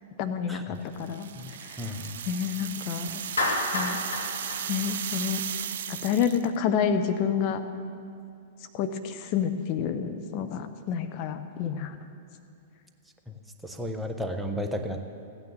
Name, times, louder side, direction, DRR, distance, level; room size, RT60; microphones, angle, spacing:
voice 1, 0.2-1.3 1.7-1.9 2.3-3.2 3.7-4.0 4.7-5.4 5.9-7.6 8.7-11.9, left 7 dB, 40° left, 7 dB, 0.8 m, -29 dB
sound 1, 1.0-6.6, right 9 dB, 60° right, 0.5 m, -36 dB
voice 2, 1.4-2.1 13.6-15.1, equal, 5° right, 5 dB, 1.0 m, -33 dB
Clapping, 3.4-5.7, left 2 dB, 80° left, 2.0 m, -30 dB
15.0 x 9.2 x 6.7 m, 2.5 s
figure-of-eight pair, 100°, 0 cm